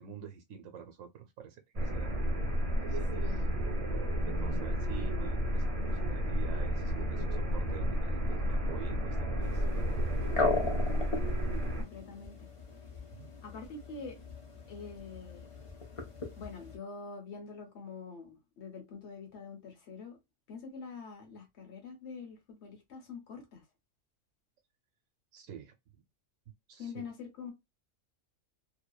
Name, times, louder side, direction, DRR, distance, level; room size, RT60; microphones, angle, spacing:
voice 1, 0.0-2.1 2.7-3.5 4.3-10.1 13.2-13.3 25.3-25.7 26.7-27.0, right 8 dB, 85° right, 1.0 m, -47 dB
sound 1, 1.7-11.8, equal, 40° right, 0.6 m, -31 dB
voice 2, 3.1-3.5 7.9-8.1 11.8-12.4 13.4-14.2 14.7-15.5 16.4-20.2 20.5-23.6 26.8-27.5, left 5 dB, 60° left, 1.0 m, -45 dB
sound 2, 9.4-16.8, left 3 dB, 35° left, 0.5 m, -38 dB
2.6 x 2.1 x 2.2 m
omnidirectional pair, 1.3 m